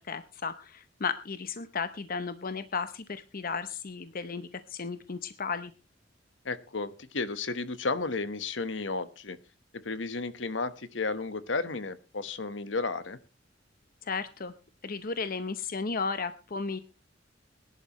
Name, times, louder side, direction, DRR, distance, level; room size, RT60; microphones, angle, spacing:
voice 1, 0.0-5.7 14.0-14.5 14.8-16.8, left 5 dB, 50° left, 11 dB, 0.8 m, -34 dB
voice 2, 6.4-9.4 9.7-13.2, left 3 dB, 75° left, 13 dB, 1.2 m, -33 dB
21.0 x 11.0 x 3.1 m, 0.31 s
head